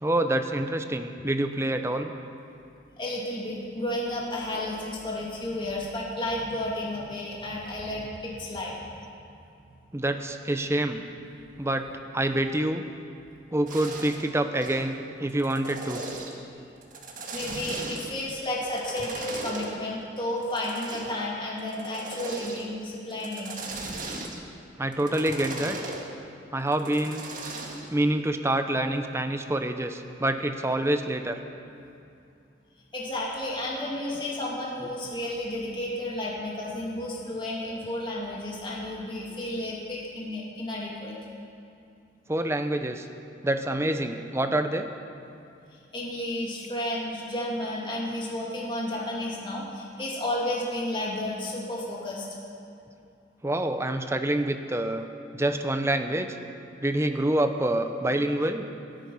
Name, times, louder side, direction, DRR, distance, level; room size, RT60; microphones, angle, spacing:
voice 1, 0.0-2.1 9.9-11.0 11.6-11.8 12.1-12.9 13.5-16.0 24.8-25.8 26.5-27.2 27.9-31.4 42.3-43.1 43.4-44.9 53.4-55.1 55.3-56.3 56.8-58.7, right 1 dB, 15° right, 7 dB, 0.7 m, -26 dB
voice 2, 3.0-8.7 17.3-23.6 32.9-41.1 45.9-52.3, left 1 dB, 25° left, -5 dB, 2.7 m, -32 dB
sound 1, 13.7-14.3 14.6-14.9 15.3-16.4 16.8-18.2 18.6-19.8 20.4-21.2 21.6-22.7 23.1-24.5 24.9-26.1 26.7-27.9, right 2 dB, 45° right, 1.8 m, -37 dB
27.0 x 9.0 x 5.5 m, 2.6 s
head